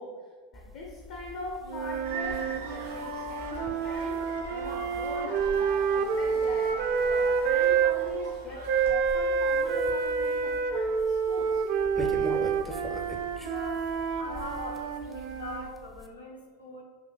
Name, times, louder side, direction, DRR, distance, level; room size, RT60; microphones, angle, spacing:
voice 1, 0.0-5.6 5.9-11.6, left 3 dB, 55° left, -1 dB, 0.6 m, -42 dB
sound 1, 0.5-16.1, left 1 dB, 10° left, 0.4 m, -44 dB
sound 2, 1.7-8.0 8.7-15.8, right 6 dB, 60° right, 0.3 m, -28 dB
sound 3, 2.0-8.9, right 3 dB, 80° right, 0.8 m, -42 dB
voice 2, 13.4-13.9 14.2-16.8, left 3 dB, 85° left, -3 dB, 0.8 m, -42 dB
6.5 x 2.6 x 2.3 m, 1.4 s
figure-of-eight pair, 85°, 0 cm